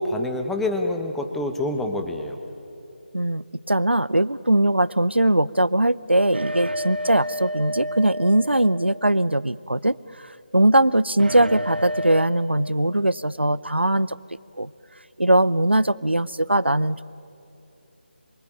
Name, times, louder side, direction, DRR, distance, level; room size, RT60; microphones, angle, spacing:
voice 1, 0.0-2.4, left 1 dB, 5° left, 5 dB, 1.0 m, -26 dB
voice 2, 3.1-14.2 14.6-14.7 15.2-17.0, right 1 dB, 90° right, 20 dB, 0.6 m, -21 dB
sound 1, 6.3-9.3 11.2-12.3, equal, 70° right, 2.0 m, -30 dB
26.5 x 23.5 x 9.0 m, 2.8 s
figure-of-eight pair, 155°, 6 cm